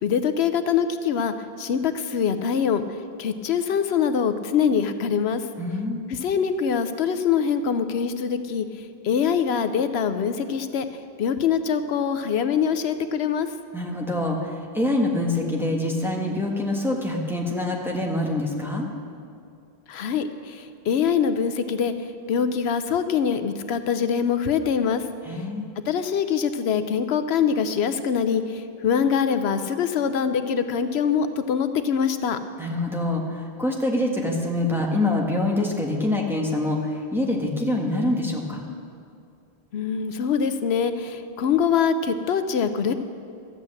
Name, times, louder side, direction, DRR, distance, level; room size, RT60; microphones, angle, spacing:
voice 1, 0.0-2.8 3.2-5.4 6.1-8.7 9.0-10.8 11.2-13.5 19.9-21.9 22.3-25.0 25.9-32.4 39.7-42.9, left 7 dB, 85° left, 10 dB, 0.9 m, -24 dB
voice 2, 5.6-6.0 13.7-18.9 25.2-25.7 32.6-38.6, left 1 dB, ahead, -1 dB, 1.4 m, -25 dB
13.0 x 8.2 x 7.6 m, 2.3 s
omnidirectional pair, 1.0 m